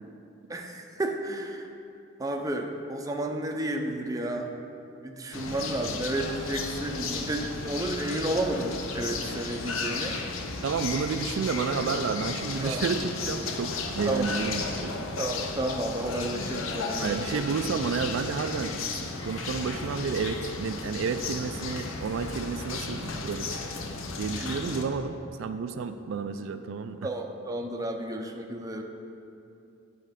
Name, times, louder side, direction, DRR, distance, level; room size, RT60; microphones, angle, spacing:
voice 1, 0.5-1.6 2.2-4.5 5.0-10.1 12.6-12.8 14.1-14.3 15.2-17.4 24.4-24.5 27.0-28.8, right 1 dB, 15° right, 2 dB, 0.5 m, -32 dB
sound 1, 5.3-24.8, left 4 dB, 90° left, 0.7 m, -34 dB
voice 2, 10.6-14.9 17.0-18.8 19.2-23.6 24.2-27.0, right 5 dB, 75° right, 9 dB, 0.3 m, -31 dB
9.7 x 4.2 x 5.0 m, 2.7 s
head